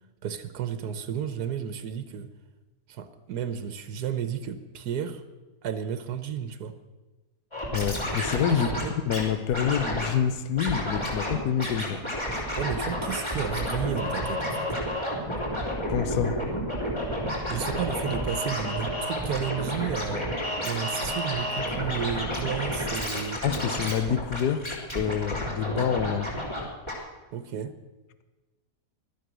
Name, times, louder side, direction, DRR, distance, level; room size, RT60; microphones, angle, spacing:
voice 1, 0.2-2.3 2.9-5.2 5.6-6.8 8.5-8.9 12.3-14.7 17.5-20.3 20.6-23.4 27.3-27.7, right 9 dB, 90° right, 11 dB, 1.4 m, -32 dB
Scratching (performance technique), 7.5-9.2 9.5-10.1 10.6-11.3 11.6-26.6 26.9-27.0, equal, 15° left, 3.3 m, -30 dB
voice 2, 7.7-8.7 9.1-12.0 15.9-16.4 23.4-26.3, left 9 dB, 85° left, 11 dB, 1.4 m, -27 dB
16.5 x 12.0 x 6.2 m, 1.2 s
omnidirectional pair, 1.7 m